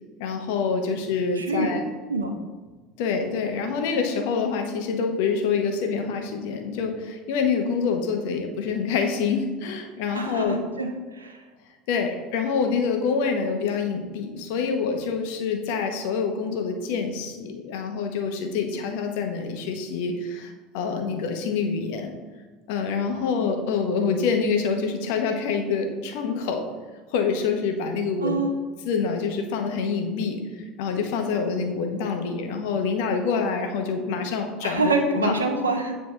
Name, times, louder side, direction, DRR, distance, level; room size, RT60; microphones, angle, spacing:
voice 1, 0.2-1.8 3.0-10.6 11.9-22.1 22.7-26.6 27.1-28.4 28.8-30.4 30.8-35.3, left 5 dB, 65° left, 4 dB, 0.9 m, -26 dB
voice 2, 1.3-1.7 2.1-2.3 10.1-11.4 28.2-28.5 34.6-36.0, right 2 dB, 90° right, 4 dB, 0.7 m, -26 dB
9.2 x 3.3 x 3.3 m, 1.4 s
hypercardioid pair, 70°, 0 cm